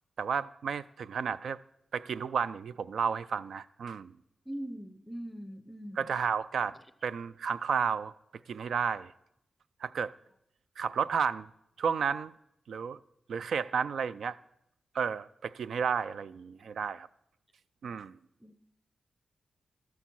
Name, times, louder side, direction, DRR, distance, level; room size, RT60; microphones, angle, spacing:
voice 1, 0.2-1.6 1.9-4.1 6.0-6.8 7.0-8.1 8.5-9.1 9.8-10.1 10.8-11.5 11.8-12.3 12.7-13.0 13.3-14.4 14.9-17.1 17.8-18.2, right 6 dB, 85° right, 0.3 m, -32 dB
voice 2, 4.5-6.1 18.4-18.6, right 1 dB, 5° left, 0.6 m, -41 dB
13.5 x 8.2 x 6.1 m
wide cardioid pair, 155°, 0 cm